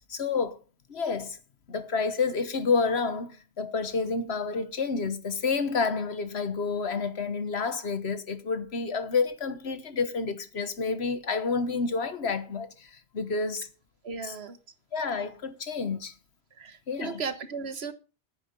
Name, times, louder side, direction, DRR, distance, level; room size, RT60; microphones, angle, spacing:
voice 1, 0.1-0.6 0.9-1.4 1.7-13.7 14.2-14.3 14.9-16.1 16.9-17.2, left 4 dB, 85° left, 1.5 m, -29 dB
voice 2, 14.0-14.6 16.6-17.9, right 5 dB, 85° right, 1.5 m, -36 dB
10.5 x 9.3 x 5.4 m
omnidirectional pair, 1.0 m